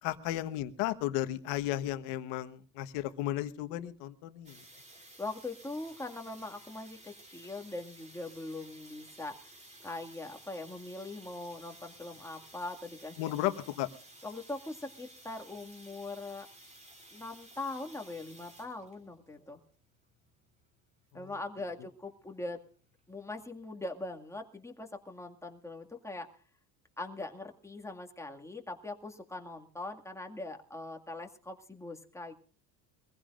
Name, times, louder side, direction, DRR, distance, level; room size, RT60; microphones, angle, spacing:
voice 1, 0.0-4.6 13.2-13.9 21.1-21.3, left 14 dB, 80° left, 10 dB, 1.4 m, -34 dB
sound 1, 4.4-23.7, right 1 dB, 15° right, 2.9 m, -55 dB
voice 2, 5.2-9.4 9.8-13.3 14.2-16.5 17.1-19.6 21.1-22.6 23.1-26.3 27.0-32.3, left 2 dB, 5° left, 3 dB, 2.1 m, -41 dB
23.5 x 15.5 x 2.5 m, 0.42 s
supercardioid pair, 105°, 40 cm